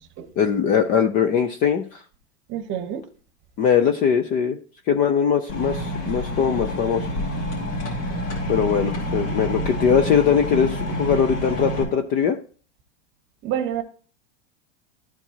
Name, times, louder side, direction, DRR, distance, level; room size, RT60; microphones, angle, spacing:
voice 1, 0.4-2.0 3.6-4.6 4.9-7.1 8.5-12.4, left 7 dB, 25° left, 0.4 m, -21 dB
voice 2, 2.5-3.0 13.4-13.8, right 10 dB, 35° right, 1.0 m, -27 dB
sound 1, 5.5-11.8, equal, 65° left, 2.9 m, -28 dB
13.0 x 4.5 x 2.8 m
supercardioid pair, 145°, 35 cm